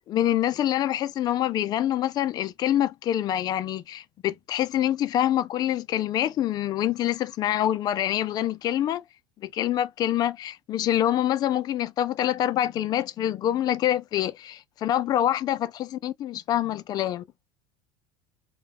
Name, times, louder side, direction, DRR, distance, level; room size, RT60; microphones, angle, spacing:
voice 1, 0.1-9.0 9.4-17.2, left 12 dB, 30° left, 0.3 m, -26 dB
2.2 x 2.2 x 3.3 m
supercardioid pair, 135°, 13 cm